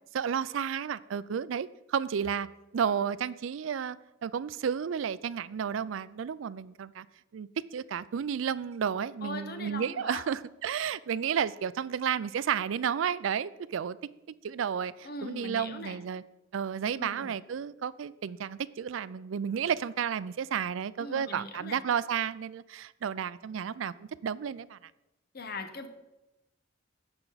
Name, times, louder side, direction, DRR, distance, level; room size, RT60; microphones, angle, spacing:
voice 1, 0.1-2.5 2.7-4.0 4.2-7.1 7.3-14.0 14.4-16.2 16.5-24.8, right 7 dB, 75° right, 17 dB, 0.4 m, -32 dB
voice 2, 9.2-10.2 15.0-16.0 17.0-17.4 21.0-21.8 25.3-25.9, left 3 dB, 50° left, 7 dB, 1.0 m, -40 dB
15.5 x 5.8 x 4.0 m, 0.99 s
head